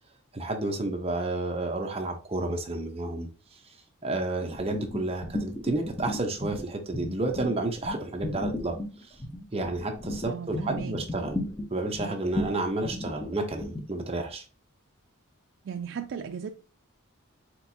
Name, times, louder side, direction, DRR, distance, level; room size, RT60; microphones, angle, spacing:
voice 1, 0.3-3.6 4.0-9.2 9.5-11.4 11.7-14.4, right 2 dB, 25° right, 0.7 m, -31 dB
sound 1, 4.5-6.6 6.9-13.8, left 1 dB, 15° left, 0.7 m, -35 dB
voice 2, 10.3-10.9 15.6-16.5, right 7 dB, 60° right, 0.3 m, -36 dB
4.4 x 4.2 x 2.7 m
head